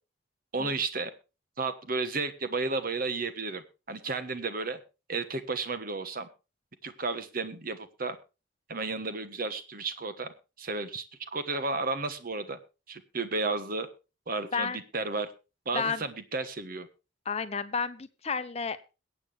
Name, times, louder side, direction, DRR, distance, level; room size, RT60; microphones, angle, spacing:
voice 1, 0.5-1.1 1.6-4.8 5.1-6.3 6.8-8.2 8.7-11.0 11.3-12.6 12.9-13.9 14.3-15.3 15.6-16.9, right 3 dB, 50° right, 10 dB, 1.3 m, -33 dB
voice 2, 15.7-16.0 17.3-18.9, left 5 dB, 35° left, 12 dB, 0.8 m, -31 dB
22.0 x 8.5 x 3.4 m, 0.31 s
head